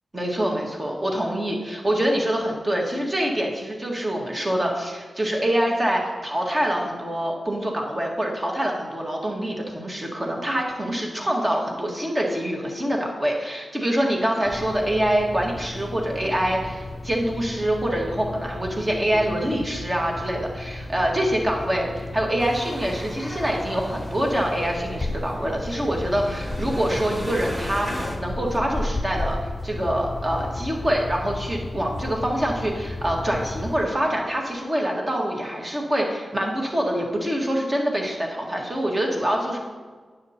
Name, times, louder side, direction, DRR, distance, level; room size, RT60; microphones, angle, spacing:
voice 1, 0.1-39.6, right 1 dB, 25° right, 0 dB, 1.7 m, -25 dB
sound 1, 14.4-33.9, left 2 dB, 25° left, 0.7 m, -34 dB
sound 2, 22.4-28.2, equal, ahead, 1.6 m, -36 dB
9.3 x 6.9 x 4.3 m, 1.5 s
wide cardioid pair, 100°, 0 cm